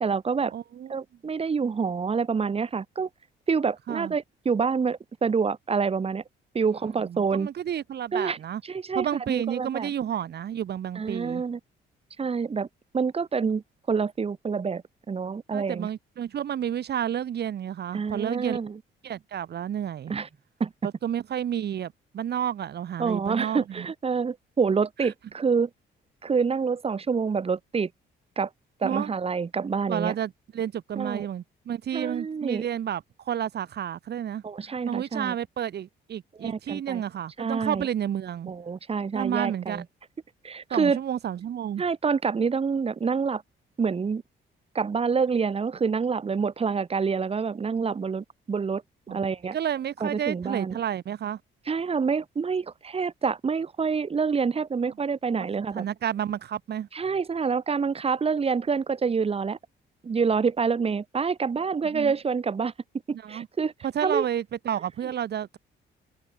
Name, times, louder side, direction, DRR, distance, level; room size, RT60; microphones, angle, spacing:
voice 1, 0.0-0.5 0.9-3.1 3.5-6.2 6.5-7.5 8.1-8.4 8.7-9.9 11.0-11.6 12.2-12.7 12.9-13.6 13.9-15.9 17.9-18.8 20.1-20.3 20.6-20.7 23.0-25.7 26.2-27.9 28.4-28.5 28.8-30.1 31.0-31.3 31.9-32.6 34.4-35.4 36.4-37.0 37.4-37.9 38.5-39.8 40.4-41.0 41.8-43.4 43.8-44.2 44.7-48.8 49.1-49.6 50.0-50.8 51.7-55.8 56.9-59.6 60.0-62.7 63.1-63.7 64.0-64.3, right 5 dB, 30° right, 0.9 m, -27 dB
voice 2, 0.5-0.9 3.9-4.1 7.0-8.6 8.9-11.4 15.5-18.6 19.0-20.1 21.0-23.9 25.0-25.1 28.8-29.1 29.9-34.4 34.8-38.5 39.1-39.8 40.7-41.8 49.1-49.2 49.5-51.4 55.3-55.5 55.7-56.9 61.8-62.1 63.1-63.5 63.8-65.6, right 9 dB, 55° right, 1.2 m, -31 dB
cardioid pair, 90°, 20 cm